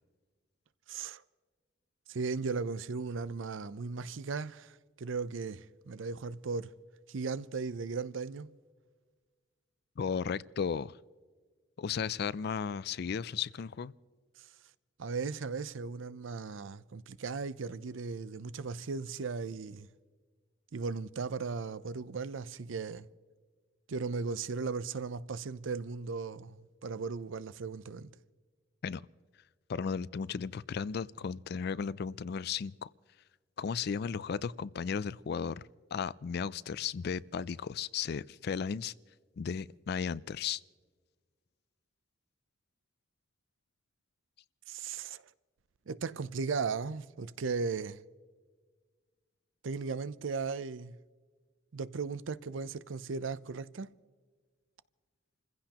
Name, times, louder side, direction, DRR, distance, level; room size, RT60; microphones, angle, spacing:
voice 1, 0.9-1.2 2.1-6.7 7.1-8.5 14.4-14.5 15.0-19.9 20.7-23.1 23.9-28.1 44.7-45.3 45.9-48.0 49.6-51.0 51.7-53.9, right 4 dB, 85° right, 0.6 m, -37 dB
voice 2, 10.0-11.0 11.8-13.9 28.8-29.0 29.7-32.9 33.6-35.6 35.9-38.9 39.4-40.6, left 6 dB, 55° left, 0.4 m, -35 dB
29.0 x 15.5 x 2.9 m
head